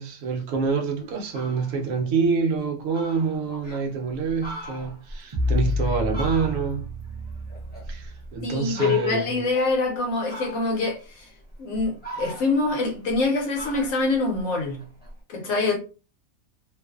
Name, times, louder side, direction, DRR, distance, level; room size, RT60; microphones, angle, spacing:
voice 1, 0.0-6.9 7.9-9.3, right 5 dB, 75° right, 1.0 m, -26 dB
Fowl, 0.7-0.8 1.2-1.8 2.3-2.4 2.6-2.7 2.9-3.8 4.3-6.9 7.2-8.3 8.7-9.4 10.3-10.9 11.5-13.2 13.5-15.1, right 1 dB, 10° left, 0.8 m, -39 dB
sound 1, 5.3-8.4, left 2 dB, 50° right, 0.4 m, -29 dB
voice 2, 8.4-11.3 11.6-14.8 15.3-15.8, left 3 dB, 75° left, 1.0 m, -25 dB
2.5 x 2.4 x 2.3 m
omnidirectional pair, 1.4 m